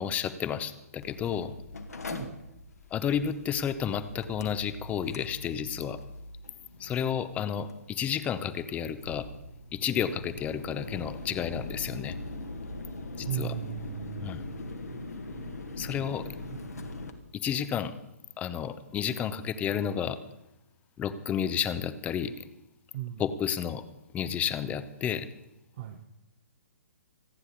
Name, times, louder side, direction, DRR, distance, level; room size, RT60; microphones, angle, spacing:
voice 1, 0.0-1.5 2.9-6.0 6.8-9.3 9.7-12.2 13.2-13.5 14.2-14.4 15.8-16.3 17.4-17.9 18.4-20.2 21.0-22.3 23.2-23.8 24.1-25.3, left 8 dB, 15° left, 13 dB, 0.9 m, -31 dB
Mechanical fan, 1.0-17.1, left 2 dB, 75° left, 2.0 m, -42 dB
voice 2, 2.1-2.4 13.3-14.5 15.8-16.1 16.5-16.9 22.9-23.2 25.8-26.0, right 12 dB, 40° right, 6 dB, 1.0 m, -38 dB
27.0 x 9.8 x 4.1 m, 0.95 s
figure-of-eight pair, 125°, 9 cm